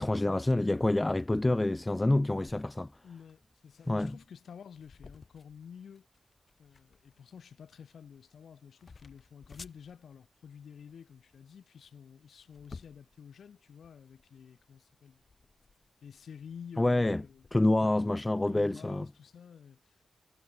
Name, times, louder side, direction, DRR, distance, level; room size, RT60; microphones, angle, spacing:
voice 1, 0.0-2.9 3.9-4.2 16.8-17.2 17.5-19.1, left 2 dB, 20° left, 0.4 m, -27 dB
sound 1, 2.7-17.9, left 4 dB, 50° left, 7.9 m, -56 dB
voice 2, 3.0-6.1 6.6-15.2 16.0-17.4 17.8-18.2 18.5-20.0, left 7 dB, 80° left, 3.9 m, -50 dB
cardioid pair, 75°, 0 cm